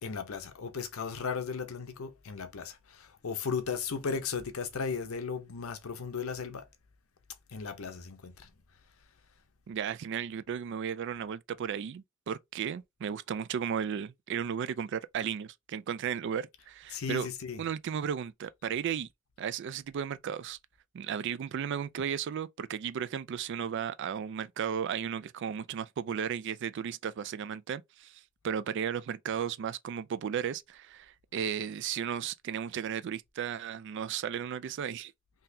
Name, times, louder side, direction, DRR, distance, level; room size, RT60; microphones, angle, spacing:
voice 1, 0.0-6.7 7.5-8.5 16.9-17.6, left 5 dB, 85° left, 0.7 m, -36 dB
voice 2, 9.7-17.3 17.6-19.1 19.4-20.6 20.9-35.1, right 8 dB, 55° right, 0.3 m, -35 dB
3.8 x 2.8 x 2.7 m
head